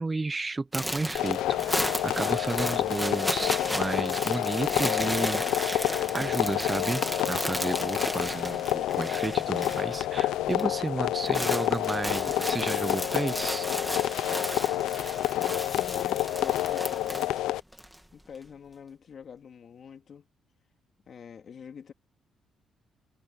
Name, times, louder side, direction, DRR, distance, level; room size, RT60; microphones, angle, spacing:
voice 1, 0.0-13.7, right 3 dB, 25° right, 0.9 m, -33 dB
sound 1, 0.7-10.0 10.3-10.7 11.0-18.0, equal, ahead, 2.4 m, -34 dB
sound 2, 1.1-17.6, left 14 dB, 85° left, 0.7 m, -29 dB
sound 3, 12.6-13.4 15.5-16.9, left 4 dB, 35° left, 6.2 m, -44 dB
voice 2, 15.3-17.4 18.1-20.3 21.1-21.9, left 7 dB, 55° left, 3.3 m, -46 dB
cardioid pair, 90°, 0 cm